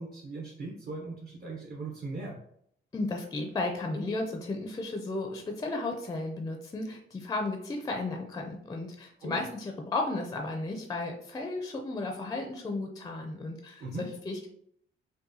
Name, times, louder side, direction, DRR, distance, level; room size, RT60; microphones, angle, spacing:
voice 1, 0.0-2.4 9.2-9.4 13.8-14.1, right 2 dB, 45° right, -2 dB, 0.7 m, -39 dB
voice 2, 2.9-14.5, left 2 dB, 20° left, 3 dB, 0.4 m, -34 dB
5.4 x 2.1 x 2.7 m, 0.69 s
wide cardioid pair, 165°, 21 cm